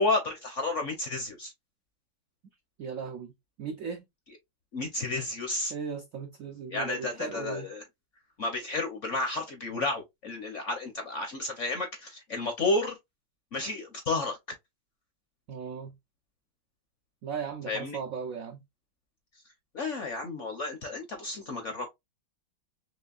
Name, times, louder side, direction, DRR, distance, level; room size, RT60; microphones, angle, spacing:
voice 1, 0.0-1.5 4.7-5.7 6.7-7.8 8.4-13.0 13.5-14.4 17.7-18.0 19.7-21.9, left 2 dB, 55° left, 0.8 m, -31 dB
voice 2, 2.8-3.3 3.6-4.0 5.7-7.7 15.5-15.9 17.2-18.6, right 6 dB, 75° right, 0.7 m, -37 dB
4.4 x 3.1 x 2.3 m
omnidirectional pair, 2.1 m